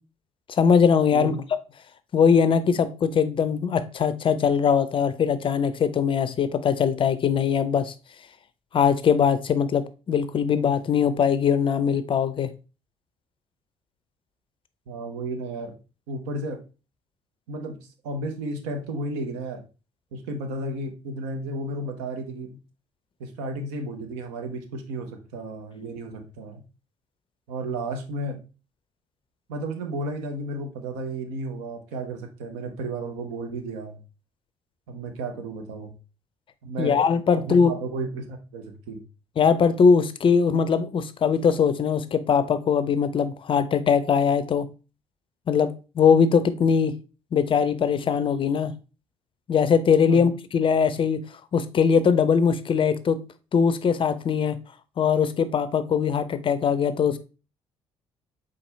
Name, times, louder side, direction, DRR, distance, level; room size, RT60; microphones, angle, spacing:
voice 1, 0.5-1.3 2.1-7.9 8.7-12.5 36.8-37.7 39.4-44.7 45.5-46.9 47.3-48.7 49.5-51.2 51.5-53.2 53.5-54.6 55.0-57.2, left 6 dB, 35° left, 13 dB, 0.5 m, -21 dB
voice 2, 1.1-1.4 14.9-15.7 16.1-16.6 17.5-17.8 18.0-19.6 20.1-22.6 23.2-26.6 27.5-28.4 29.5-34.0 34.9-35.9 36.6-37.0 37.5-39.0 50.1-50.2, right 2 dB, 70° right, 5 dB, 0.8 m, -33 dB
4.4 x 3.7 x 3.2 m, 0.32 s
figure-of-eight pair, 50°, 16 cm